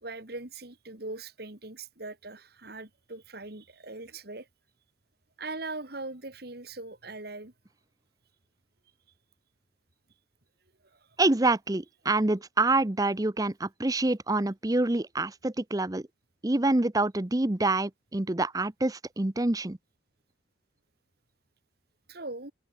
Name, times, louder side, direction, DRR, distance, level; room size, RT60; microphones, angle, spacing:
voice 1, 0.0-4.5 5.4-7.5 10.9-11.1 22.1-22.5, right 2 dB, 55° right, 2.5 m, -40 dB
voice 2, 11.2-16.0 16.4-19.8, right 2 dB, 20° right, 0.7 m, -26 dB
open air
head